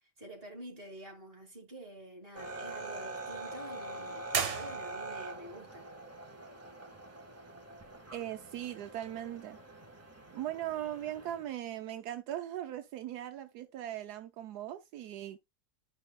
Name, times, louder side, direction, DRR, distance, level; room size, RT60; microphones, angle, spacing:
voice 1, 0.2-5.9, right 1 dB, 35° right, 2.7 m, -48 dB
sound 1, 2.3-11.5, right 2 dB, 10° right, 1.1 m, -44 dB
sound 2, 4.3-5.3, right 6 dB, 65° right, 1.7 m, -35 dB
voice 2, 8.1-9.6 10.3-15.4, right 12 dB, 80° right, 1.2 m, -39 dB
12.0 x 5.6 x 2.2 m
omnidirectional pair, 1.7 m